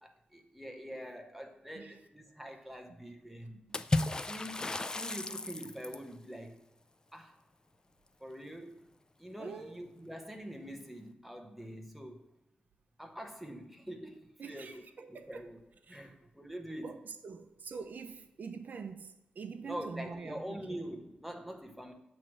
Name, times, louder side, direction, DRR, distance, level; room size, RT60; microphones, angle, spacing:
voice 1, 0.0-3.6 4.3-6.6 7.1-7.3 8.2-8.9 9.2-12.3 13.0-14.8 15.1-15.6 15.9-16.9 19.6-21.9, equal, 5° right, 0.9 m, -45 dB
Water / Splash splatter, 3.7-6.1, left 2 dB, 25° left, 0.3 m, -34 dB
voice 2, 9.4-9.8 14.4-15.5 15.8-16.3 16.8-20.9, right 5 dB, 65° right, 0.5 m, -45 dB
7.5 x 3.1 x 5.8 m
wide cardioid pair, 100°, 3 cm